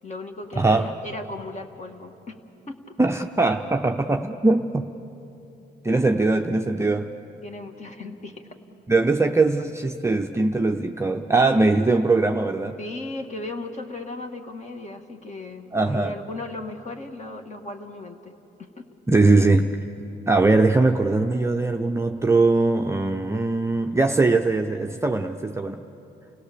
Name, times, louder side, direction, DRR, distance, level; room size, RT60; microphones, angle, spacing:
voice 1, 0.0-2.4 2.7-3.0 7.4-8.6 12.8-18.3 18.6-18.9, left 2 dB, 35° left, 5 dB, 1.9 m, -36 dB
voice 2, 0.6-0.9 3.0-4.9 5.8-7.1 8.9-12.8 15.7-16.2 19.1-19.8 20.3-25.8, right 3 dB, 15° right, 4 dB, 0.6 m, -21 dB
29.5 x 17.0 x 6.8 m, 2.9 s
cardioid pair, 90°, 20 cm